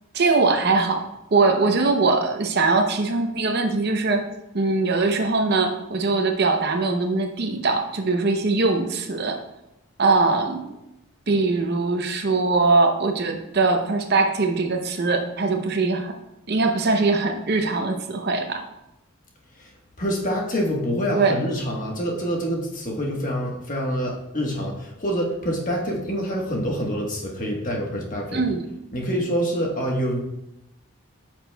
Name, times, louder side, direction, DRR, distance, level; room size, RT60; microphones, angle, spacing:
voice 1, 0.1-1.0 1.3-4.3 4.5-9.4 10.0-10.8 11.3-16.2 16.5-18.6 21.1-21.4 28.3-28.7, right 3 dB, 50° right, 5 dB, 0.7 m, -21 dB
voice 2, 20.0-28.4 28.9-30.2, equal, 40° left, -1 dB, 1.3 m, -26 dB
9.5 x 6.0 x 2.3 m, 0.89 s
head